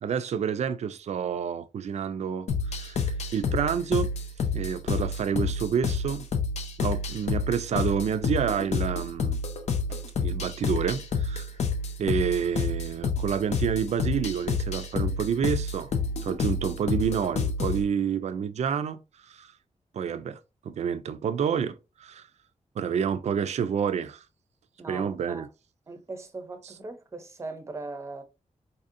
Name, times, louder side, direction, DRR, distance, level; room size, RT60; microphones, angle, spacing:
voice 1, 0.0-4.1 4.5-6.2 6.8-9.4 9.9-11.5 12.0-15.9 16.2-19.0 19.3-19.5 19.9-20.4 20.6-22.2 22.8-24.2 24.9-25.5, right 7 dB, 65° right, 0.4 m, -29 dB
sound 1, 2.5-17.8, left 4 dB, 65° left, 0.6 m, -29 dB
voice 2, 24.8-25.4 25.9-28.2, right 3 dB, 25° right, 0.6 m, -39 dB
4.1 x 2.6 x 2.5 m
wide cardioid pair, 170°, 12 cm